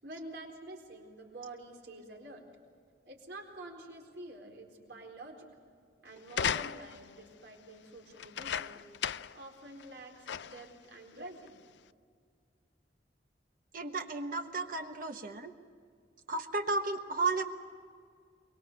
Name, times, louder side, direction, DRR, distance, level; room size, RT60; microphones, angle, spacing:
voice 1, 0.0-2.5 3.0-5.5 6.0-8.8 9.3-11.6, right 2 dB, 75° right, 1 dB, 4.3 m, -48 dB
sound 1, 6.3-7.1 8.2-9.4 9.8-9.9 10.3-10.7 11.5-11.6, left 8 dB, 80° left, 0.5 m, -35 dB
voice 2, 13.7-15.5 16.3-17.4, right 3 dB, 50° right, 5 dB, 1.2 m, -33 dB
23.5 x 22.5 x 6.9 m, 2.1 s
head